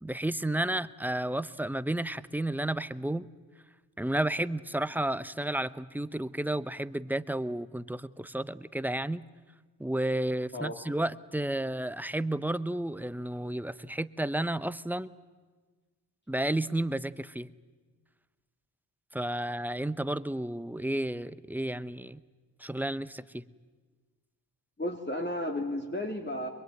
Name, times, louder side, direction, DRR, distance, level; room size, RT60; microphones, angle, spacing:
voice 1, 0.0-3.3 4.0-9.2 9.8-15.1 16.3-17.5 19.1-22.2 22.6-23.4, right 1 dB, 5° right, 15 dB, 0.9 m, -32 dB
voice 2, 24.8-26.5, left 1 dB, 25° left, 2 dB, 3.0 m, -33 dB
23.0 x 22.5 x 9.2 m, 1.4 s
cardioid pair, 50°, 42 cm